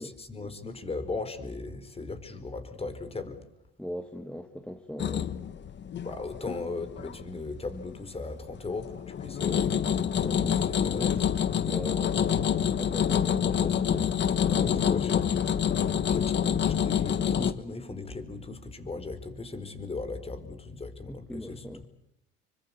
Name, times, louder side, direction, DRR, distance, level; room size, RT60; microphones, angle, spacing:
voice 1, 0.0-3.4 6.0-9.7 10.1-11.3 14.5-15.3 15.5-15.8 16.1-21.9, left 3 dB, 20° left, 4.6 m, -37 dB
voice 2, 3.8-5.4 11.6-14.8 21.1-21.8, equal, 5° left, 2.1 m, -41 dB
sound 1, 5.0-7.2 7.6-8.1 8.5-17.5, left 8 dB, 40° left, 1.5 m, -27 dB
27.5 x 24.5 x 8.5 m
supercardioid pair, 100°, 29 cm